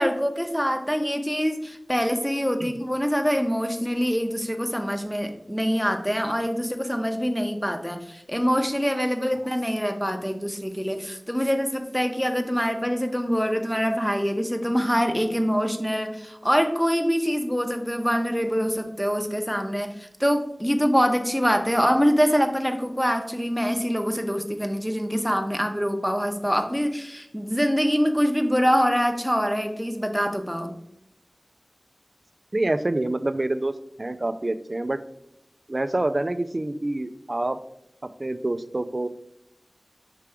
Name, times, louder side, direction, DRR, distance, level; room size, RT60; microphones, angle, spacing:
voice 1, 0.0-30.7, equal, 5° left, 5 dB, 0.9 m, -24 dB
voice 2, 32.5-33.7 34.0-35.0 35.7-37.6 38.2-39.1, right 2 dB, 50° right, 12 dB, 0.4 m, -26 dB
5.8 x 3.4 x 4.9 m, 0.81 s
wide cardioid pair, 45°, 0 cm